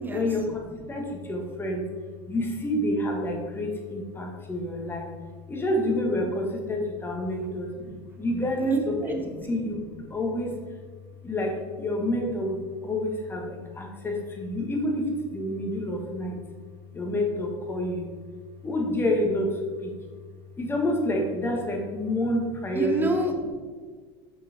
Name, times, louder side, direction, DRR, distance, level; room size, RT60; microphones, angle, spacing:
voice 1, 0.0-1.8 2.3-5.1 5.5-10.6 11.2-16.4 16.9-18.1 18.6-19.9 20.6-23.1, left 1 dB, 15° left, 0 dB, 1.6 m, -28 dB
voice 2, 8.6-9.2 22.7-23.5, right 2 dB, 15° right, 4 dB, 1.1 m, -27 dB
6.4 x 5.7 x 4.4 m, 1.5 s
supercardioid pair, 110°, 13 cm